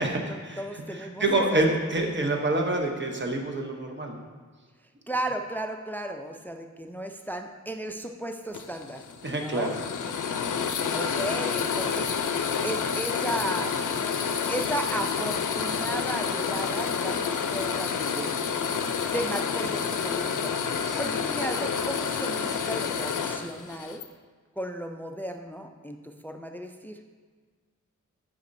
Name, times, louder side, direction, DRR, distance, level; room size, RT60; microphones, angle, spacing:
voice 1, 0.0-0.6 0.9-4.2 9.2-9.8 20.8-21.2, right 2 dB, 35° right, 2 dB, 0.8 m, -27 dB
voice 2, 0.6-1.6 5.1-9.0 9.3-9.7 10.9-12.1 12.6-13.8 14.5-18.4 19.1-20.6 21.0-24.0 24.6-27.1, right 1 dB, 5° left, 5 dB, 0.3 m, -35 dB
sound 1, 8.5-24.1, left 6 dB, 80° left, 0.5 m, -29 dB
8.3 x 5.0 x 2.6 m, 1.5 s
wide cardioid pair, 105°, 31 cm